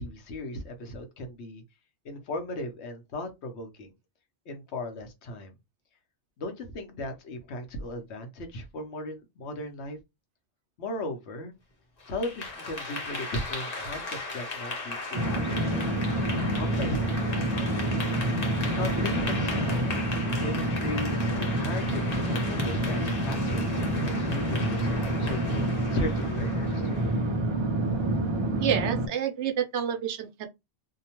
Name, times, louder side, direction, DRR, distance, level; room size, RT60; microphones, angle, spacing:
voice 1, 0.0-1.6 2.0-3.9 4.5-5.5 6.4-10.0 10.8-11.5 12.1-16.1 16.5-17.9 18.6-19.9 20.4-25.4 25.9-26.9, left 1 dB, 75° left, 1.0 m, -37 dB
Clapping / Applause, 12.0-27.3, left 3 dB, 40° left, 0.8 m, -37 dB
sound 1, 15.1-29.1, right 1 dB, 50° right, 0.3 m, -28 dB
voice 2, 28.6-30.5, right 9 dB, 80° right, 0.9 m, -29 dB
2.7 x 2.1 x 2.9 m
omnidirectional pair, 1.2 m